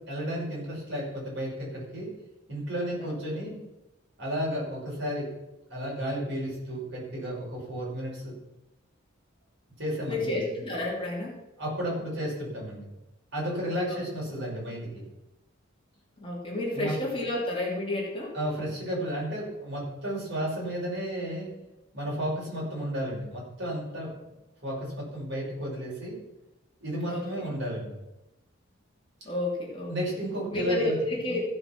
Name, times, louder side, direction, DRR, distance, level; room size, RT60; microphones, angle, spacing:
voice 1, 0.1-2.1 2.5-3.6 4.2-5.3 5.7-8.4 9.8-10.2 11.6-12.9 13.3-15.0 16.8-16.9 18.3-21.5 21.9-24.2 24.6-26.2 26.8-28.0 29.9-30.9, equal, 55° right, -4 dB, 5.5 m, -32 dB
voice 2, 3.0-3.5 10.1-11.4 13.9-14.0 16.2-18.4 27.1-27.6 29.2-29.9 30.5-31.4, left 1 dB, 25° left, -3 dB, 2.8 m, -31 dB
15.0 x 6.6 x 6.0 m, 0.96 s
head